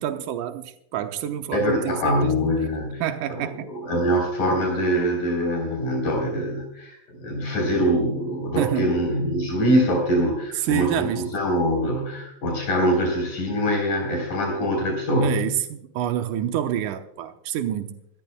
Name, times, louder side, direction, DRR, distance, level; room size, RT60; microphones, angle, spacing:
voice 1, 0.0-2.3 3.0-3.7 8.6-9.0 10.6-11.3 15.2-18.0, right 10 dB, 90° right, 2.3 m, -27 dB
voice 2, 1.5-3.0 3.3-3.4 3.7-15.4, equal, 75° left, 5.2 m, -23 dB
27.0 x 13.5 x 2.2 m
omnidirectional pair, 3.6 m